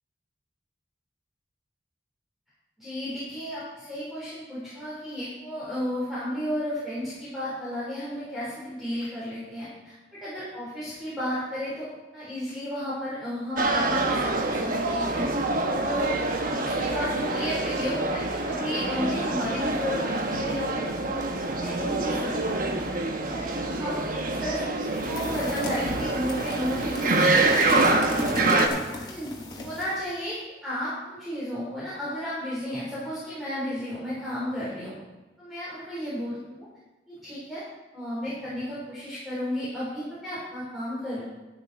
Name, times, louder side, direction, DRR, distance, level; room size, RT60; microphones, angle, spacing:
voice 1, 2.8-9.9 10.2-11.9 12.1-15.3 15.6-21.2 21.5-22.9 23.3-27.4 28.3-28.7 29.0-29.3 29.6-34.9 35.4-36.7 37.1-37.6 37.9-41.2, equal, ahead, -10 dB, 3.8 m, -33 dB
sound 1, 13.6-28.7, right 2 dB, 50° right, 1.1 m, -26 dB
sound 2, 24.9-30.0, left 1 dB, 25° left, 2.0 m, -35 dB
11.5 x 11.5 x 4.2 m, 1.1 s
head